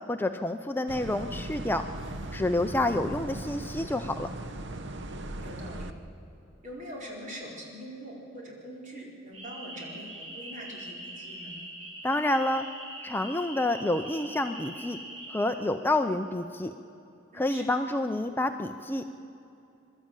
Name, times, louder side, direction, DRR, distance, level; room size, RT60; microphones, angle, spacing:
voice 1, 0.1-1.9 2.3-4.3 12.0-12.7 13.0-15.0 15.3-16.7 17.3-19.0, left 1 dB, 10° left, 7 dB, 0.5 m, -28 dB
sound 1, 0.9-5.9, right 1 dB, 65° right, 1.0 m, -38 dB
voice 2, 5.4-5.9 6.6-11.6 17.3-17.7, equal, 40° right, -3 dB, 4.5 m, -43 dB
sound 2, 9.3-15.4, right 1 dB, 90° right, 6.7 m, -42 dB
22.5 x 13.0 x 8.9 m, 2.9 s
head